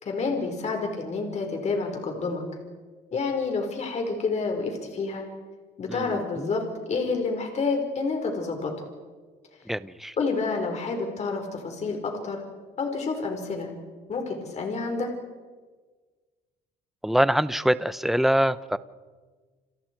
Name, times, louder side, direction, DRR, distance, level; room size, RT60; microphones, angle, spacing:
voice 1, 0.0-2.4 3.1-5.2 5.8-8.7 10.2-12.4 12.8-13.7 14.1-15.1, left 4 dB, 40° left, 3 dB, 4.8 m, -29 dB
voice 2, 5.9-6.5 9.7-10.1 17.0-18.8, equal, ahead, 15 dB, 0.8 m, -24 dB
29.5 x 29.5 x 4.7 m, 1.4 s
cardioid pair, 110°, 17 cm